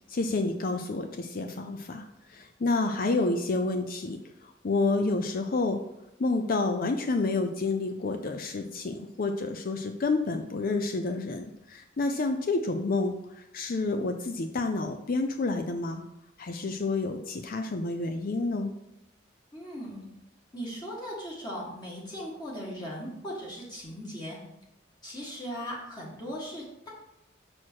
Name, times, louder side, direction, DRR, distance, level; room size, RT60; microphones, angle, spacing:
voice 1, 0.1-5.8 6.2-16.0 16.4-18.7, left 3 dB, 45° left, 6 dB, 0.5 m, -29 dB
voice 2, 19.5-20.0 20.5-24.4 25.0-26.9, equal, 20° left, -4 dB, 1.5 m, -38 dB
6.4 x 6.1 x 4.5 m, 0.86 s
head